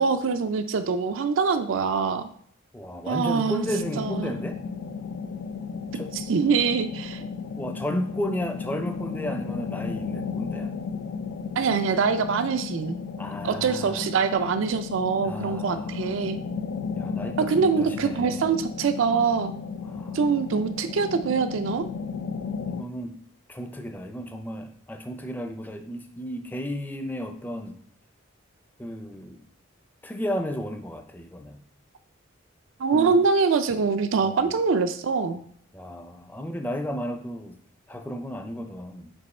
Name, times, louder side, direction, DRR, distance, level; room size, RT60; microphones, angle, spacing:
voice 1, 0.0-2.3 3.1-3.6 4.0-4.3 6.1-7.2 11.6-13.0 13.4-16.4 17.4-19.5 20.1-21.9 32.8-35.4, right 5 dB, 75° right, 9 dB, 0.4 m, -24 dB
voice 2, 2.7-4.6 5.9-6.1 7.6-10.7 13.2-14.0 15.2-16.1 17.0-18.5 19.8-20.2 22.6-23.2 23.5-27.8 28.8-29.4 30.0-31.6 32.9-33.2 34.2-34.5 35.7-37.6 37.9-39.1, equal, 10° left, 6 dB, 0.4 m, -33 dB
sound 1, 3.6-22.8, left 5 dB, 90° left, 0.4 m, -34 dB
5.3 x 4.3 x 4.2 m, 0.63 s
head